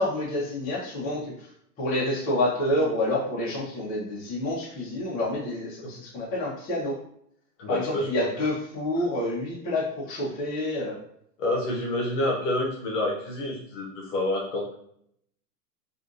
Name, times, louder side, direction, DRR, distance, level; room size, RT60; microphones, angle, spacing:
voice 1, 0.0-1.5 1.8-6.9 7.7-11.0, left 1 dB, 20° left, -7 dB, 1.0 m, -28 dB
voice 2, 7.6-8.1 11.4-14.7, left 1 dB, 50° left, -1 dB, 1.0 m, -28 dB
3.4 x 2.7 x 2.5 m, 0.70 s
hypercardioid pair, 150°, 48 cm